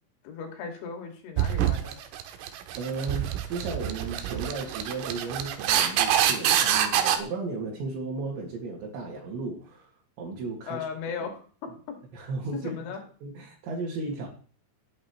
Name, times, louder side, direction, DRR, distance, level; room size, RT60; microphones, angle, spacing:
voice 1, 0.2-2.0 10.7-12.0 12.5-13.0, left 6 dB, 70° left, 3 dB, 4.4 m, -37 dB
sound 1, 1.4-7.2, right 10 dB, 90° right, 3.7 m, -26 dB
voice 2, 2.8-9.9 10.2-10.9 12.1-12.7 13.2-14.3, right 3 dB, 65° right, -3 dB, 4.1 m, -34 dB
18.0 x 8.8 x 3.1 m, 0.42 s
omnidirectional pair, 5.9 m